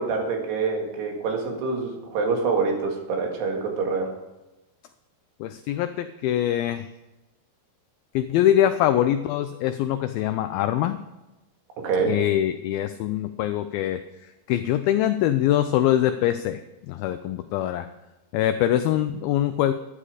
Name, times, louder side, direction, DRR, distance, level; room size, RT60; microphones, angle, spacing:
voice 1, 0.0-4.1 11.8-12.2, right 4 dB, 80° right, 1 dB, 3.9 m, -26 dB
voice 2, 5.4-6.9 8.2-11.0 12.1-14.0 14.5-17.9 18.3-19.7, left 12 dB, 85° left, 9 dB, 2.1 m, -23 dB
12.0 x 9.8 x 4.9 m, 1.0 s
omnidirectional pair, 4.8 m